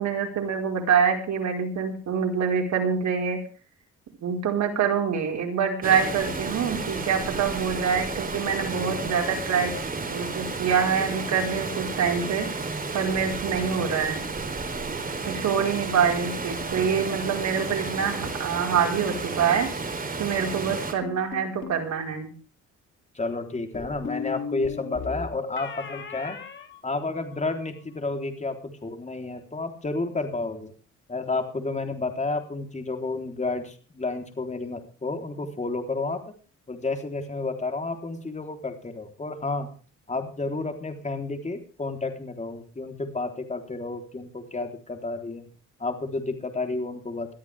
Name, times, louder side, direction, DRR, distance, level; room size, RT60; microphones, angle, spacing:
voice 1, 0.0-3.4 4.2-9.7 10.1-12.5 12.9-14.2 15.3-19.7 20.2-22.3, right 7 dB, 65° right, 2 dB, 5.0 m, -25 dB
Water, 5.8-20.9, right 3 dB, 30° right, 3.6 m, -32 dB
sound 1, 21.0-21.8 23.7-27.5, left 6 dB, 40° left, 3.6 m, -37 dB
voice 2, 23.2-26.4 26.8-30.7 31.1-36.3 36.7-39.7 40.1-45.5 45.8-47.3, left 3 dB, 25° left, 4 dB, 3.8 m, -31 dB
21.0 x 13.5 x 3.5 m, 0.38 s
cardioid pair, 90°, 30 cm